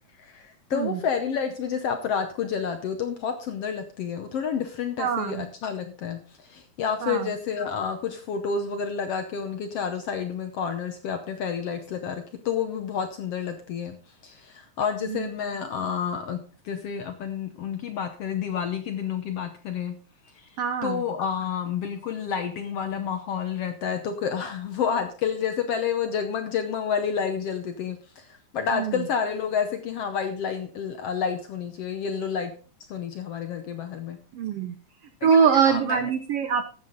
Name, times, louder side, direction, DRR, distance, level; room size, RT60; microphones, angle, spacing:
voice 1, 0.2-14.0 14.2-16.4 16.6-20.0 20.3-20.5 20.8-32.5 32.9-34.2 35.2-36.1, left 7 dB, 70° left, 7 dB, 1.5 m, -29 dB
voice 2, 5.0-5.4 7.0-7.3 15.1-15.3 20.6-21.0 28.7-28.9 34.3-34.7 35.2-36.6, right 7 dB, 80° right, 9 dB, 1.3 m, -23 dB
13.0 x 8.3 x 3.9 m, 0.40 s
omnidirectional pair, 3.7 m